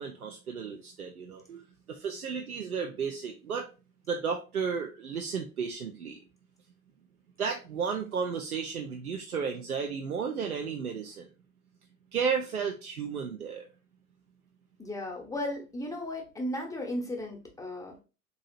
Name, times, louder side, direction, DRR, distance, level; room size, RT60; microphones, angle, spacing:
voice 1, 0.0-1.6 1.9-3.7 4.1-6.2 7.4-11.3 12.1-13.7, right 6 dB, 85° right, 3 dB, 0.5 m, -33 dB
voice 2, 14.8-18.0, left 1 dB, 10° left, 2 dB, 0.7 m, -35 dB
4.0 x 2.8 x 2.4 m, 0.32 s
figure-of-eight pair, 75°, 43 cm